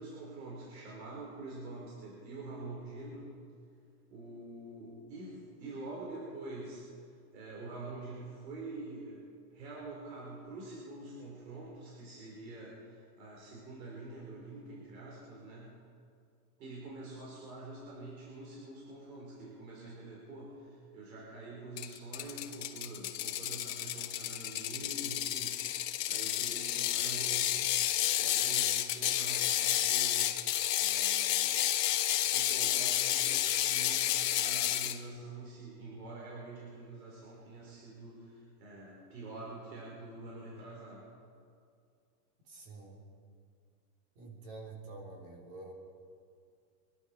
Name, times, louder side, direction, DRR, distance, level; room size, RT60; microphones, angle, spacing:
voice 1, 0.0-3.4 4.1-6.9 7.3-15.8 16.6-25.6 26.1-30.3 30.8-31.7 32.2-41.1, right 2 dB, 85° right, -4 dB, 5.3 m, -46 dB
Ratchet pawl, 21.8-35.0, left 12 dB, 75° left, 1.3 m, -31 dB
voice 2, 42.4-43.0 44.2-45.7, right 3 dB, 35° right, -1 dB, 3.6 m, -47 dB
25.5 x 12.0 x 4.8 m, 2.3 s
supercardioid pair, 170°, 48 cm